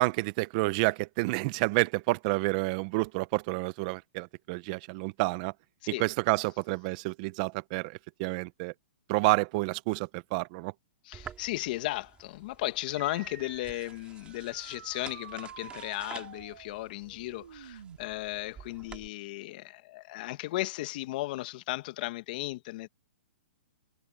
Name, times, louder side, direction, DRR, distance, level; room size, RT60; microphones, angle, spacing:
voice 1, 0.0-5.5 6.0-8.7 9.1-10.7, right 24 dB, 40° right, 0.9 m, -29 dB
voice 2, 11.0-22.9, left 18 dB, 45° left, 1.9 m, -35 dB
sound 1, 11.1-19.1, right 8 dB, 15° right, 3.8 m, -50 dB
sound 2, 13.0-18.0, right 8 dB, 75° right, 8.0 m, -49 dB
hypercardioid pair, 145°, 6 cm